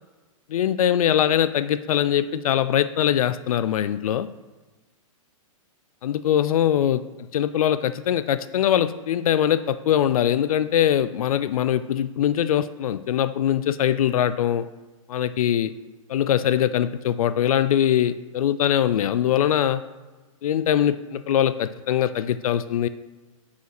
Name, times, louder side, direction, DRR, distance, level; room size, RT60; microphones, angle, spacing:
voice 1, 0.5-4.3 6.0-7.0 7.3-14.6 15.1-15.7 16.1-19.8 20.4-22.9, left 10 dB, 85° left, 14 dB, 0.4 m, -22 dB
5.6 x 5.0 x 5.9 m, 1.2 s
hypercardioid pair, 170°, 18 cm